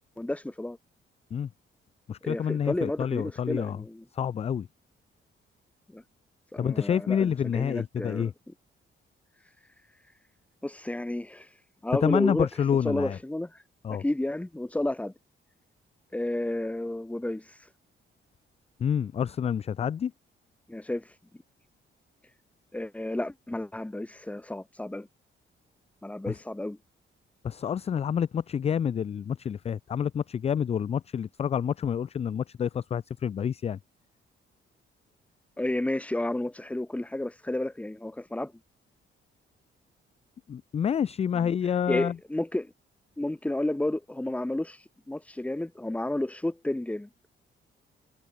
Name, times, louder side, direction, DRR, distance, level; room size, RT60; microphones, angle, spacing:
voice 1, 0.2-0.8 2.2-4.0 5.9-6.0 6.5-8.3 10.6-11.5 11.8-12.5 12.8-13.6 13.9-15.1 16.1-17.5 20.7-21.0 22.7-25.1 26.0-26.8 35.6-38.5 41.3-41.5 41.9-42.7 43.2-47.1, left 1 dB, 5° left, 1.4 m, -31 dB
voice 2, 2.1-3.8 4.1-4.7 6.6-8.3 12.0-13.2 13.8-14.0 18.8-20.1 26.3-26.4 27.4-33.8 40.5-42.2, left 8 dB, 30° left, 0.4 m, -28 dB
wide cardioid pair, 160°, 21 cm